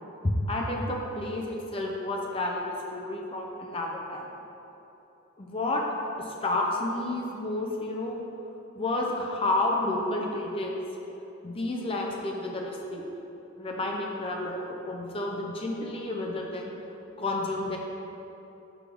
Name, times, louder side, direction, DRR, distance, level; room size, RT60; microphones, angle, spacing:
voice 1, 0.2-4.2 5.4-5.8 6.2-8.2 8.8-10.8 11.4-13.0 13.6-16.7 17.2-17.8, left 2 dB, 25° left, 0 dB, 0.5 m, -30 dB
6.1 x 4.6 x 3.4 m, 3.0 s
head